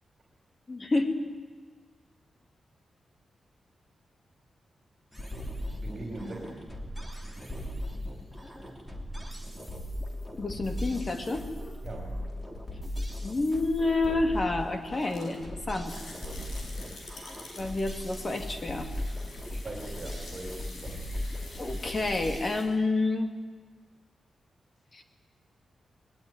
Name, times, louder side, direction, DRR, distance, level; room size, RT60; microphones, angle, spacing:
voice 1, 0.7-1.2 10.4-11.4 13.2-15.9 17.6-18.9 21.6-23.3 24.9-25.0, left 2 dB, 30° left, 6 dB, 2.5 m, -29 dB
sound 1, 5.1-22.4, left 1 dB, 10° left, 3.0 m, -38 dB
voice 2, 5.8-6.6 11.8-12.2 16.7-16.8 19.6-21.0, right 2 dB, 35° right, 0 dB, 4.7 m, -40 dB
sound 2, 14.5-22.6, left 2 dB, 60° left, 5.5 m, -48 dB
21.5 x 19.5 x 9.6 m, 1.5 s
wide cardioid pair, 130°, 0 cm